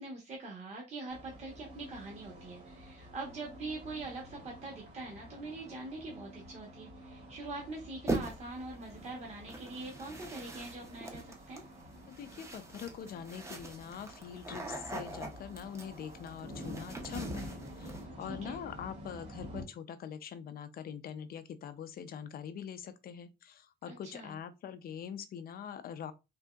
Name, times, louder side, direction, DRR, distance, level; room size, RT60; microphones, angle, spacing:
voice 1, 0.0-11.6 18.4-18.6 23.9-24.4, right 2 dB, 35° right, 0.9 m, -43 dB
sound 1, 1.1-19.6, equal, 60° right, 1.9 m, -49 dB
sound 2, 8.1-8.6 9.5-18.0, right 2 dB, 15° right, 0.5 m, -42 dB
voice 2, 12.1-26.1, left 8 dB, 50° left, 0.4 m, -44 dB
3.4 x 2.7 x 2.2 m
cardioid pair, 155°, 20 cm